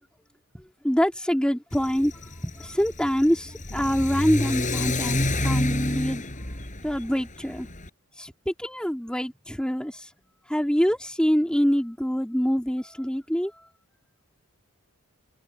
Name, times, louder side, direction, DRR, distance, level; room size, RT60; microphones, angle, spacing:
voice 1, 0.5-2.1 2.4-6.2 6.8-7.7 8.2-10.1 10.5-13.5, equal, 5° left, 3.2 m, -25 dB
Car / Accelerating revving vroom, 1.7-7.9, left 1 dB, 35° left, 6.2 m, -29 dB
head